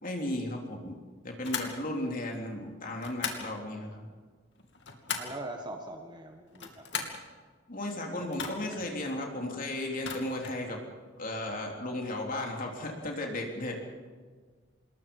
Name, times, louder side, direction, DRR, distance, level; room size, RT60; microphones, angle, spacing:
voice 1, 0.0-1.0 1.2-4.1 7.7-10.8 11.2-13.8, left 1 dB, 45° left, 1 dB, 3.5 m, -35 dB
sound 1, 1.4-1.8 3.0-3.5 4.6-5.4 6.5-7.2 8.3-8.8 9.9-10.6, left 6 dB, 65° left, 2.8 m, -37 dB
voice 2, 5.2-7.1 8.2-8.3, right 1 dB, 25° right, 3 dB, 1.6 m, -42 dB
26.5 x 21.0 x 5.5 m, 1.5 s
head